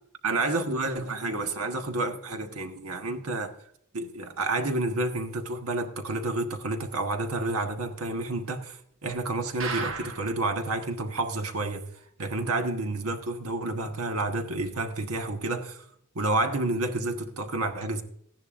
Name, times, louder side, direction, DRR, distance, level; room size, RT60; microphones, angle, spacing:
voice 1, 0.2-3.5 3.9-11.9 12.2-15.8 16.1-18.0, right 2 dB, 80° right, 1.3 m, -30 dB
sound 1, 9.6-10.4 10.8-10.9 11.2-11.3 11.7-11.8, right 4 dB, 60° right, 1.2 m, -34 dB
14.5 x 10.5 x 2.5 m
head